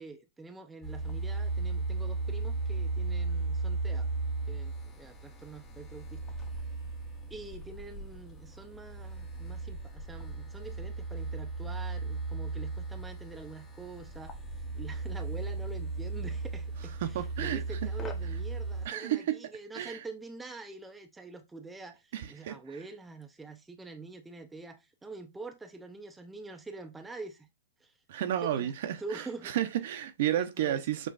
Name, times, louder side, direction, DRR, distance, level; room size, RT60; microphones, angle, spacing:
voice 1, 0.0-4.1 4.5-6.4 7.3-14.4 14.7-27.5 27.8-27.9 28.4-28.7 29.0-29.5 30.2-31.0, right 3 dB, 10° right, 0.5 m, -45 dB
sound 1, 0.8-18.9, right 3 dB, 20° left, 0.8 m, -36 dB
voice 2, 17.0-17.6 18.8-19.4 19.7-20.0 22.1-22.6 28.1-31.1, right 11 dB, 60° right, 0.6 m, -32 dB
6.1 x 2.5 x 2.4 m
hypercardioid pair, 130°, 0 cm